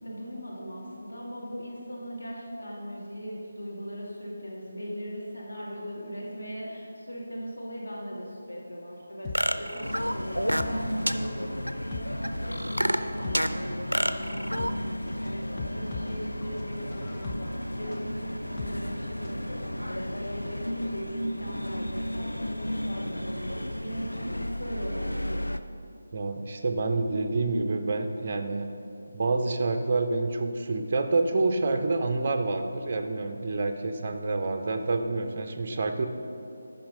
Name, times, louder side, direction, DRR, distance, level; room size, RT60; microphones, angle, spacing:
voice 1, 0.0-25.4, equal, 65° left, -4 dB, 1.9 m, -39 dB
sound 1, 9.2-19.5 19.8-19.9, left 3 dB, 15° left, 0.6 m, -40 dB
sound 2, 9.4-10.8 11.1-11.2 11.7-11.8 12.2-13.5 13.9-14.7, equal, 90° right, 0.4 m, -27 dB
sound 3, 9.8-25.6, equal, 80° left, 0.4 m, -34 dB
voice 2, 26.1-28.7 29.1-36.1, right 3 dB, 35° right, 6 dB, 0.6 m, -28 dB
8.7 x 5.7 x 5.4 m, 2.6 s
figure-of-eight pair, 155°, 0 cm